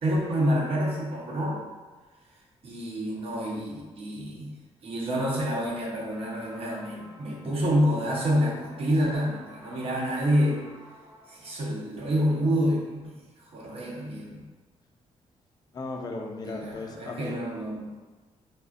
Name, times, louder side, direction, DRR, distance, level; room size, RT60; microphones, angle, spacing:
voice 1, 0.0-1.6 2.6-4.6 4.8-10.6 11.3-14.4 16.4-17.9, equal, 55° right, -4 dB, 0.7 m, -28 dB
sound 1, 6.1-13.0, left 1 dB, 25° right, 1.1 m, -50 dB
voice 2, 15.7-17.4, left 3 dB, 35° left, 1 dB, 0.4 m, -36 dB
3.3 x 2.1 x 2.4 m, 1.3 s
cardioid pair, 125°, 12 cm